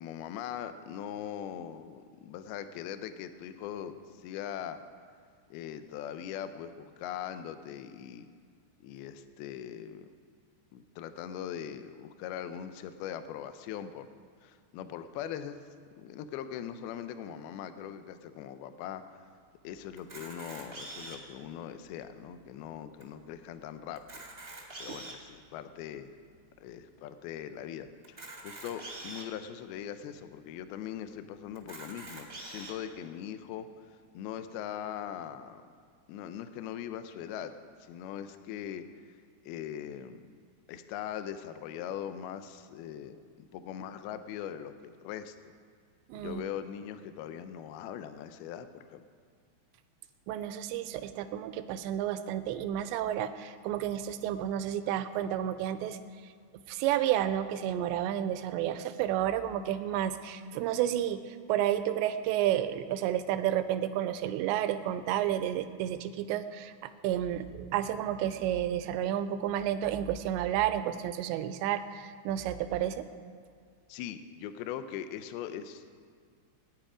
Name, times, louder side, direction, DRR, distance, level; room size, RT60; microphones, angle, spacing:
voice 1, 0.0-4.8 5.5-8.4 8.8-10.1 10.7-14.1 14.4-15.6 16.0-19.2 19.6-24.0 24.8-26.1 26.6-33.7 34.1-35.6 36.1-37.5 37.8-38.9 39.4-40.4 40.7-45.4 46.1-49.1 73.9-76.0, left 9 dB, 80° left, 10 dB, 2.4 m, -41 dB
Camera, 20.0-21.4 22.0-22.1 22.3-22.5 23.0-23.1 23.9-25.3 25.9-26.0 28.0-29.3 30.0-30.1 30.4-30.5 31.5-32.7, right 2 dB, 40° right, 0.8 m, -44 dB
voice 2, 46.1-46.4 50.3-56.0 56.7-73.1, right 11 dB, 90° right, 11 dB, 2.9 m, -31 dB
21.5 x 9.8 x 5.0 m, 2.1 s
omnidirectional pair, 5.0 m